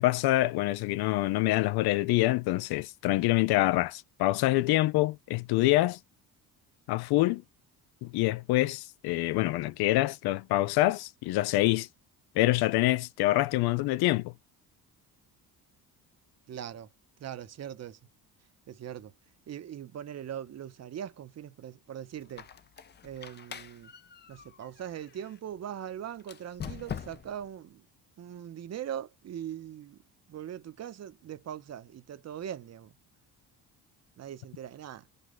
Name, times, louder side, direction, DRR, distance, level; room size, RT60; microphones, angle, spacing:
voice 1, 0.0-6.0 6.9-7.4 8.0-11.9 12.4-14.3, left 17 dB, 80° left, 0.5 m, -26 dB
voice 2, 16.5-16.9 17.2-18.0 18.7-19.1 19.5-22.5 23.0-23.9 24.3-27.9 28.2-30.0 30.3-32.9 34.2-35.1, right 10 dB, 45° right, 0.7 m, -41 dB
Squeak, 22.2-25.4 26.2-27.5, left 8 dB, 30° left, 0.5 m, -43 dB
5.1 x 2.3 x 3.8 m
cardioid pair, 120°, 37 cm